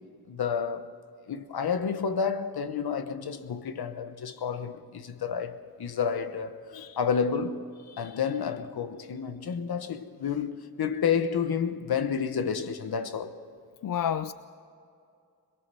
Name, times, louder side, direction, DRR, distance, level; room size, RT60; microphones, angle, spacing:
voice 1, 0.3-0.9 1.3-6.6 7.0-13.4, left 6 dB, 85° left, 1.2 m, -30 dB
voice 2, 13.8-14.3, left 9 dB, 60° left, 0.5 m, -30 dB
22.0 x 22.0 x 6.9 m
wide cardioid pair, 120°, 37 cm